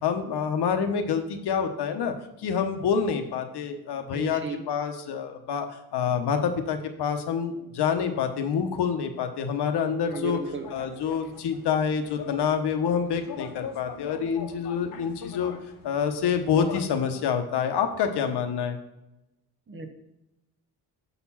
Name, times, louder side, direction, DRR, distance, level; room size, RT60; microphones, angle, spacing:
voice 1, 0.0-2.1 2.4-10.4 10.7-15.5 15.8-18.8, left 7 dB, 90° left, 7 dB, 1.0 m, -27 dB
voice 2, 4.1-4.6 10.1-10.7 19.7-19.9, right 4 dB, 30° right, 6 dB, 0.8 m, -34 dB
sound 1, 10.0-16.9, left 6 dB, 55° left, 0.7 m, -42 dB
7.1 x 4.2 x 5.6 m, 0.91 s
wide cardioid pair, 165°, 39 cm